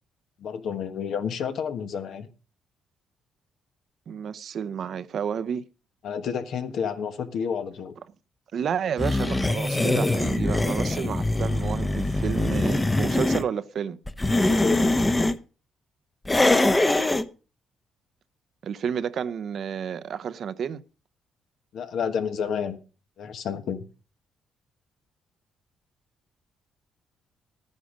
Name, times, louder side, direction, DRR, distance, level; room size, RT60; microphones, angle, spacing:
voice 1, 0.4-2.3 6.0-7.9 14.3-14.9 21.7-22.8 23.2-23.8, left 7 dB, 70° left, 1.4 m, -30 dB
voice 2, 4.1-5.6 8.5-14.0 18.6-20.8, right 7 dB, 60° right, 0.7 m, -31 dB
sound 1, 9.0-13.4 14.1-15.4 16.3-17.3, left 2 dB, 15° left, 0.9 m, -23 dB
12.0 x 9.7 x 5.1 m
cardioid pair, 90°, 0 cm